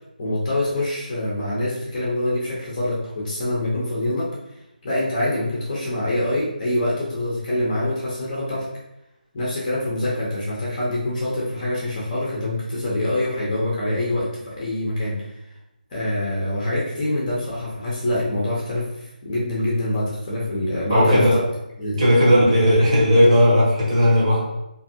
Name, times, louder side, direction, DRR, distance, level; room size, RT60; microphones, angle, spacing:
voice 1, 0.2-4.3 4.8-8.7 9.3-15.2 15.9-21.4 21.8-22.0, left 1 dB, 25° left, -7 dB, 0.6 m, -25 dB
voice 2, 20.9-21.4 22.0-24.4, equal, 40° right, -5 dB, 1.0 m, -16 dB
2.6 x 2.5 x 2.6 m, 0.89 s
figure-of-eight pair, 165°, 5 cm